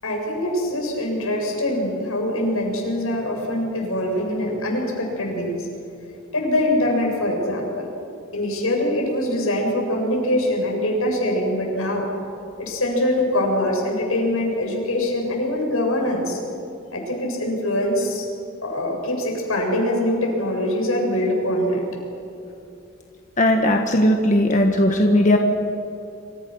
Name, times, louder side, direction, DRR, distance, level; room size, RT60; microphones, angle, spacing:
voice 1, 0.0-5.7 6.3-7.9 8.3-12.1 12.6-16.4 16.9-18.2 18.6-21.8, left 1 dB, 85° left, 0 dB, 7.5 m, -23 dB
voice 2, 23.4-25.4, left 1 dB, 35° left, 3 dB, 1.6 m, -17 dB
27.0 x 26.5 x 6.4 m, 2.7 s
head